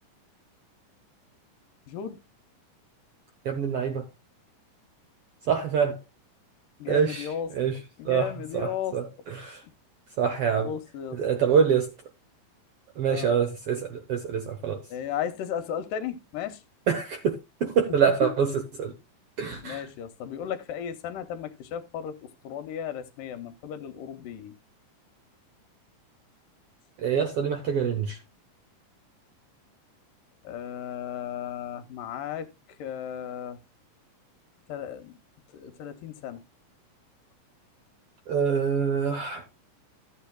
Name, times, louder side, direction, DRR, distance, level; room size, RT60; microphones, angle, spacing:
voice 1, 1.9-2.2 6.8-7.5 8.0-9.0 10.6-11.2 13.1-13.3 14.9-16.6 18.0-18.3 19.6-24.5 30.4-32.5 32.8-33.6 34.7-35.2 35.5-36.4, left 9 dB, 75° left, 2.4 m, -35 dB
voice 2, 3.4-4.0 5.5-6.0 6.9-7.3 7.5-7.7 8.0-9.6 10.2-10.7 11.1-11.9 13.0-14.8 16.9-18.5 18.8-18.9 19.4-19.8 27.0-28.2 38.3-39.4, right 7 dB, 75° right, 1.3 m, -25 dB
14.0 x 8.5 x 2.3 m
omnidirectional pair, 4.0 m